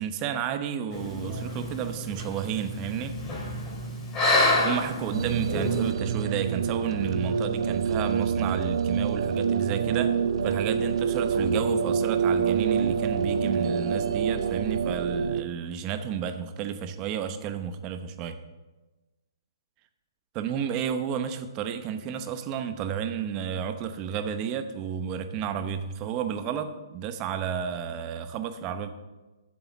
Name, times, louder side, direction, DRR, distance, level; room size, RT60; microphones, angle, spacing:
voice 1, 0.0-3.2 4.6-10.2 10.4-18.4 20.3-28.9, right 8 dB, 25° right, 9 dB, 0.8 m, -31 dB
sound 1, 0.9-5.9, left 2 dB, 20° left, 3.2 m, -28 dB
sound 2, 5.1-15.4, right 6 dB, 70° right, 0.6 m, -26 dB
7.6 x 7.0 x 7.1 m, 1.2 s
hypercardioid pair, 145°, 3 cm